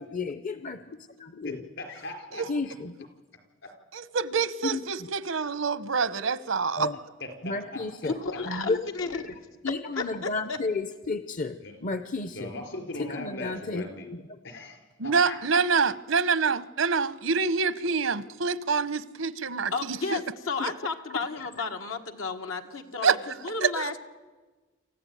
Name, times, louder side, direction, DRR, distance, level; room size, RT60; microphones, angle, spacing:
voice 1, 0.0-1.6 2.5-3.1 4.7-5.1 6.8-7.0 7.4-8.1 8.5-9.3 9.6-12.5 13.0-14.2 21.1-21.3, left 3 dB, 40° left, 12 dB, 0.7 m, -33 dB
voice 2, 1.4-2.8 3.6-3.7 6.1-6.2 7.2-8.1 11.6-11.8 12.3-14.1 14.4-15.7, left 2 dB, 65° left, 6 dB, 4.4 m, -40 dB
voice 3, 3.9-6.9 15.0-20.2 23.0-23.2 23.6-23.9, right 5 dB, 80° right, 17 dB, 0.9 m, -26 dB
voice 4, 8.0-9.2 9.9-10.6 19.7-24.0, left 4 dB, 85° left, 4 dB, 1.7 m, -33 dB
27.5 x 15.0 x 9.3 m, 1.3 s
head